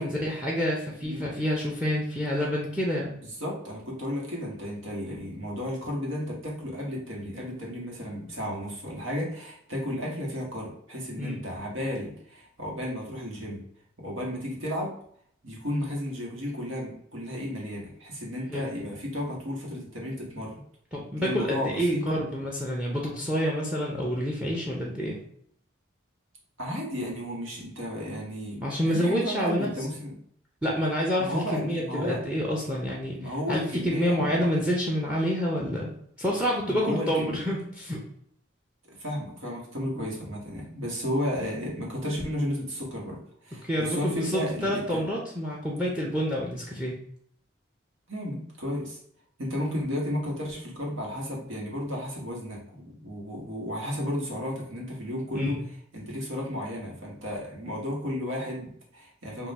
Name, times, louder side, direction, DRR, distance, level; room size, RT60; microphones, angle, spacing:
voice 1, 0.0-3.1 11.2-11.4 18.5-18.7 20.9-25.2 28.6-29.7 30.6-35.9 36.2-38.0 40.0-40.1 43.6-46.9 55.3-55.6, equal, 5° right, -1 dB, 0.5 m, -28 dB
voice 2, 3.2-13.6 14.0-14.9 15.4-20.6 21.2-22.0 26.6-30.2 31.2-32.2 33.1-34.5 36.6-37.4 38.9-45.0 48.1-49.0 49.4-55.6 55.9-59.5, equal, 85° right, -2 dB, 1.3 m, -33 dB
3.7 x 2.5 x 4.0 m, 0.64 s
head